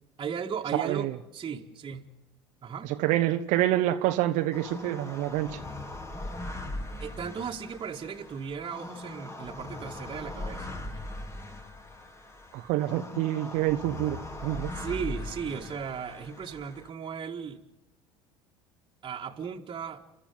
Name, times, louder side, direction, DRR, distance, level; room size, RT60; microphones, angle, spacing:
voice 1, 0.2-2.1 2.6-2.9 7.0-10.7 14.7-17.6 19.0-20.0, right 7 dB, 35° right, 0 dB, 1.8 m, -36 dB
voice 2, 0.7-1.2 2.8-5.6 12.5-14.7, right 14 dB, 70° right, 7 dB, 1.0 m, -27 dB
sound 1, 4.5-16.9, left 1 dB, 20° left, 2.7 m, -40 dB
29.5 x 13.0 x 9.4 m, 0.89 s
hypercardioid pair, 80°, 14 cm